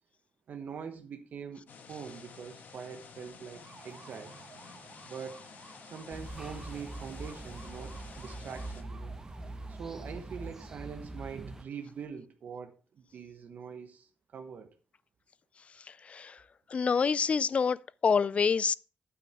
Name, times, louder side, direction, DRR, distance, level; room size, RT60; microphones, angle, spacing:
voice 1, 0.5-4.4 5.0-5.5 5.8-9.1 9.7-14.7, right 6 dB, 65° right, 1.2 m, -43 dB
sound 1, 1.7-8.8, left 5 dB, 70° left, 1.7 m, -51 dB
Ambulance siren, 3.5-12.0, right 4 dB, 45° right, 1.5 m, -55 dB
sound 2, 6.1-11.6, right 2 dB, 15° right, 1.0 m, -43 dB
voice 2, 15.9-16.4 16.7-18.7, left 5 dB, 45° left, 0.4 m, -27 dB
9.3 x 8.6 x 3.6 m
cardioid pair, 105°, 3 cm